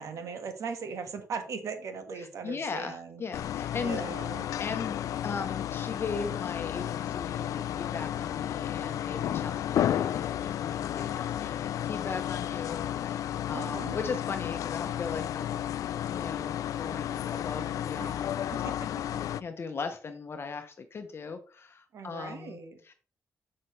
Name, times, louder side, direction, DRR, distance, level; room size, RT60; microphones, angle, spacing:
voice 1, 0.0-3.2 3.8-4.5 13.5-14.0 18.0-18.1 18.5-18.9 21.9-22.8, right 5 dB, 70° right, 7 dB, 1.6 m, -39 dB
voice 2, 2.2-4.0 4.6-5.0 5.2-15.7 16.1-18.6 19.4-22.6 22.8-22.9, left 5 dB, 45° left, 7 dB, 0.9 m, -38 dB
sound 1, 3.3-19.4, left 11 dB, 85° left, 0.4 m, -32 dB
7.4 x 6.6 x 3.2 m, 0.38 s
cardioid pair, 90°, 6 cm